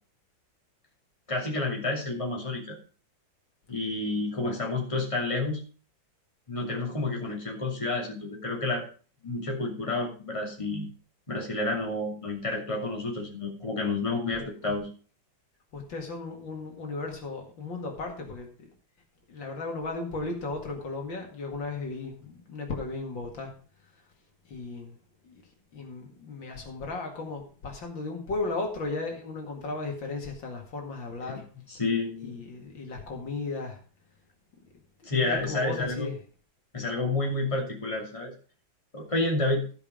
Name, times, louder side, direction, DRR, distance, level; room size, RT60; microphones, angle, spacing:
voice 1, 1.3-2.7 3.7-5.6 6.5-8.8 9.2-10.9 11.3-14.9 31.7-32.4 35.0-36.1 36.7-38.3 38.9-39.7, left 2 dB, 15° left, -1 dB, 2.6 m, -30 dB
voice 2, 14.4-14.7 15.7-18.7 19.3-23.5 24.5-24.9 25.2-25.4 25.7-31.5 32.2-33.8 35.1-36.2, left 3 dB, 70° left, 2 dB, 2.8 m, -35 dB
14.5 x 5.3 x 5.1 m, 0.39 s
omnidirectional pair, 2.1 m